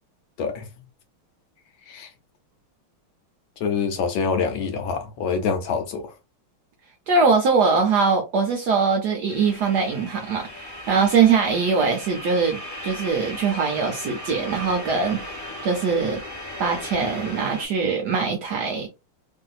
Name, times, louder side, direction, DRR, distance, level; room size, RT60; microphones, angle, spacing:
voice 1, 3.6-6.1, left 5 dB, 75° left, 1.3 m, -26 dB
voice 2, 7.1-16.2 16.6-18.9, right 5 dB, 70° right, 1.0 m, -22 dB
sound 1, 9.3-17.6, left 1 dB, 20° left, 0.5 m, -37 dB
3.2 x 2.6 x 2.4 m
omnidirectional pair, 2.3 m